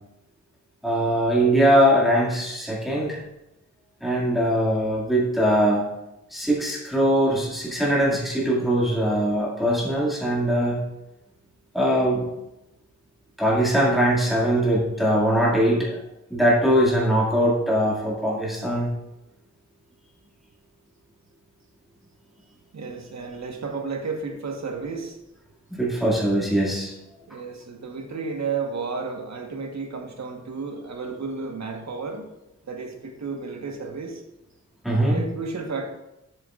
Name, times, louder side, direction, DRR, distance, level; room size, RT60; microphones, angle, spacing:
voice 1, 0.8-3.2 4.0-5.9 6.3-10.8 11.7-12.3 13.4-16.0 16.3-18.9 25.8-26.9 34.8-35.2, equal, ahead, -6 dB, 2.3 m, -21 dB
voice 2, 22.7-25.2 27.3-32.3 32.7-34.2 35.1-35.9, right 4 dB, 60° right, 3 dB, 1.4 m, -32 dB
12.5 x 7.8 x 2.5 m, 0.91 s
wide cardioid pair, 155°, 30 cm